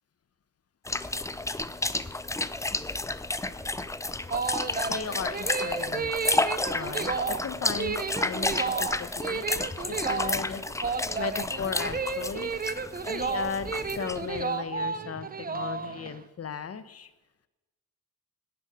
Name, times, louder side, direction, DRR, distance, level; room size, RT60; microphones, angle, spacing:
sound 1, 0.8-14.4, left 2 dB, 10° left, 0.4 m, -31 dB
sound 2, 4.0-16.2, right 5 dB, 25° right, 0.7 m, -32 dB
voice 1, 4.9-6.1 6.7-12.5 13.1-17.1, left 6 dB, 45° left, 12 dB, 1.1 m, -36 dB
17.5 x 10.5 x 6.5 m, 1.1 s
wide cardioid pair, 145°, 34 cm